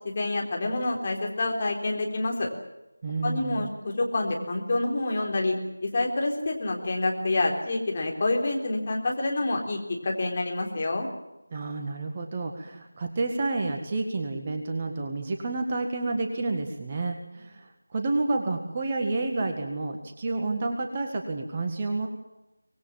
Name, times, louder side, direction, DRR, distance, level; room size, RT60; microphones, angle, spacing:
voice 1, 0.2-2.5 3.2-5.6 5.8-11.1, left 2 dB, 25° left, 0 dB, 3.7 m, -27 dB
voice 2, 3.0-3.7 11.5-22.1, right 3 dB, 20° right, 3 dB, 1.8 m, -30 dB
25.0 x 20.0 x 7.3 m, 0.99 s
figure-of-eight pair, 170°, 0 cm